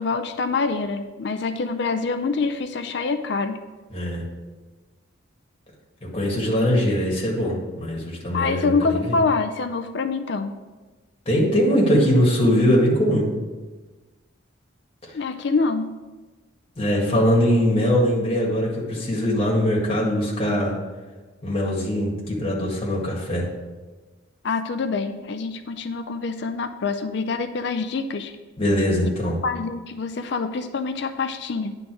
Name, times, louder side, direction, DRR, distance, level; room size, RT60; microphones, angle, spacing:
voice 1, 0.0-3.6 8.3-10.5 15.1-15.9 24.4-28.3 29.4-31.7, left 4 dB, 55° left, 9 dB, 0.4 m, -25 dB
voice 2, 3.9-4.2 6.0-9.2 11.3-13.3 16.8-20.8 21.4-23.5 28.6-29.4, equal, 30° left, -3 dB, 1.8 m, -21 dB
9.6 x 3.9 x 6.0 m, 1.2 s
head